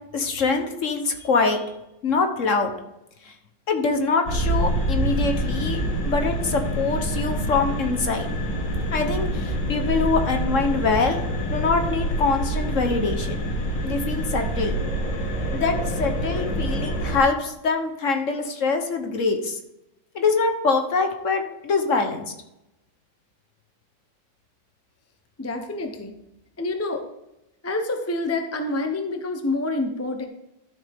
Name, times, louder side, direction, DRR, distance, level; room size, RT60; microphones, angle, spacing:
voice 1, 0.1-1.7 2.0-2.7 3.2-3.3 3.7-8.3 8.9-11.2 11.5-13.4 13.8-14.7 15.5-19.6 20.1-22.3, left 4 dB, 50° left, 5 dB, 1.2 m, -24 dB
sound 1, 4.2-17.2, right 1 dB, 80° left, 2.2 m, -26 dB
voice 2, 25.4-26.2 26.6-27.0 27.6-30.3, left 2 dB, 25° left, 5 dB, 0.3 m, -27 dB
12.5 x 7.0 x 3.5 m, 0.87 s
omnidirectional pair, 2.0 m